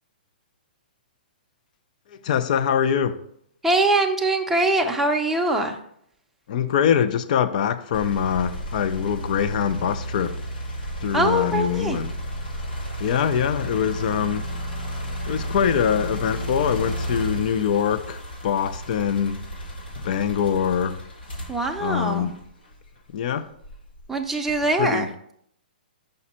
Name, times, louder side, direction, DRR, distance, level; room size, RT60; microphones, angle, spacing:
voice 1, 2.2-3.2 6.5-10.4 11.0-12.2 13.0-14.5 15.3-19.4 20.0-21.0 21.8-22.4 23.1-23.5 24.8-25.1, left 8 dB, 50° left, 0.5 m, -23 dB
voice 2, 3.6-5.8 11.1-12.0 21.5-22.3 24.1-25.1, right 2 dB, 5° right, 0.6 m, -22 dB
sound 1, 7.9-23.0 23.6-24.8, equal, 75° left, 2.0 m, -33 dB
5.4 x 5.0 x 4.2 m
hypercardioid pair, 135°, 5 cm